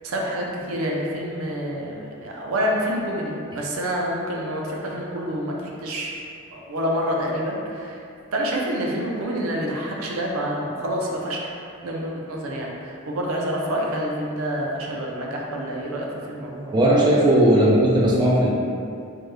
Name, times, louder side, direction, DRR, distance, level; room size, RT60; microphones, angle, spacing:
voice 1, 0.0-6.1 6.5-8.0 8.3-11.4 11.8-16.7, equal, 80° right, -1 dB, 0.5 m, -27 dB
voice 2, 16.7-18.6, right 1 dB, 20° right, -5 dB, 0.3 m, -17 dB
3.3 x 2.1 x 3.2 m, 2.5 s
head